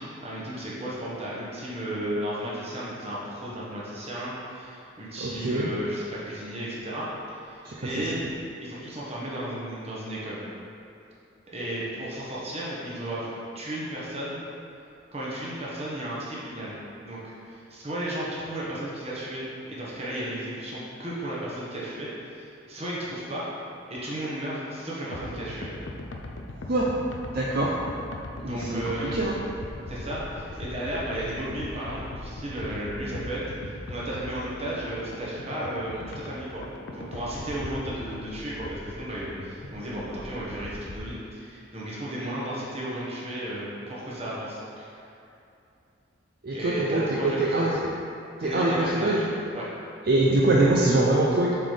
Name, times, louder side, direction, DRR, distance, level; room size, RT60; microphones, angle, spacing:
voice 1, 0.0-8.2 8.6-10.4 11.5-14.4 15.1-16.8 17.0-23.5 23.9-25.7 28.4-29.2 29.9-36.6 36.9-44.9 46.5-47.5 48.4-49.2 49.5-49.7, right 1 dB, 30° right, -7 dB, 1.3 m, -34 dB
voice 2, 5.2-5.7 7.6-7.7 26.7-26.9 27.3-27.7 28.4-29.4 46.4-47.8 48.4-49.3 50.1-51.5, right 2 dB, 50° right, -4 dB, 0.5 m, -23 dB
sound 1, 25.1-41.1, left 2 dB, 70° left, 0.5 m, -40 dB
7.3 x 4.0 x 3.3 m, 2.6 s
head